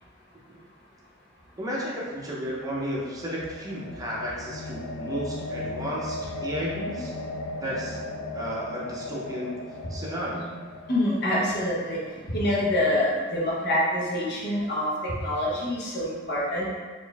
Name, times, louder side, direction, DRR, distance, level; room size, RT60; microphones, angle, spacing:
voice 1, 1.6-7.1 7.6-8.0 8.3-9.5 9.9-10.5, equal, 20° right, -5 dB, 0.6 m, -33 dB
sound 1, 2.3-12.5, left 2 dB, 85° left, 0.4 m, -37 dB
voice 2, 10.9-12.0 12.3-16.7, left 1 dB, 55° left, -5 dB, 0.9 m, -26 dB
4.2 x 2.5 x 3.3 m, 1.5 s
head